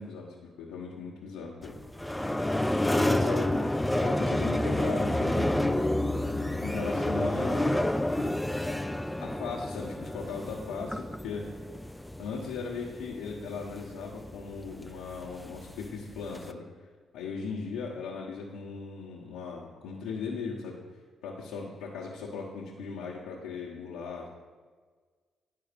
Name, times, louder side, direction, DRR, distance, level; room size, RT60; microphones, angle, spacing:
voice 1, 0.0-1.8 3.0-3.6 4.0-5.7 6.6-8.3 9.2-11.5 12.2-16.6 17.1-20.8 21.2-24.3, left 5 dB, 85° left, -6 dB, 1.1 m, -38 dB
sound 1, 1.6-16.5, left 1 dB, 10° left, 0.4 m, -30 dB
11.0 x 3.8 x 5.2 m, 1.5 s
supercardioid pair, 60°, 0 cm